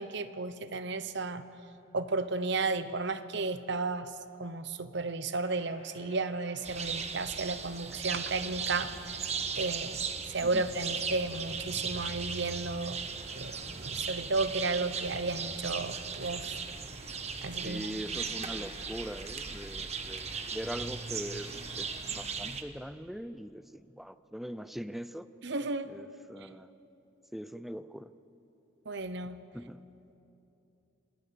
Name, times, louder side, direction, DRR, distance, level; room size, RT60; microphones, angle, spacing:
voice 1, 0.0-1.4 1.9-4.1 4.4-9.2 9.6-10.0 10.3-13.0 13.3-16.5 17.4-18.2 25.4-26.0 28.9-29.4, right 3 dB, 65° right, 12 dB, 1.0 m, -33 dB
sound 1, 5.4-22.3, left 3 dB, 35° left, 2.2 m, -55 dB
sound 2, 6.6-22.6, right 5 dB, 35° right, 1.2 m, -37 dB
voice 2, 17.6-25.3 25.9-26.7 27.3-28.1 29.5-29.8, equal, ahead, 13 dB, 0.5 m, -42 dB
27.5 x 21.0 x 7.0 m, 2.9 s
head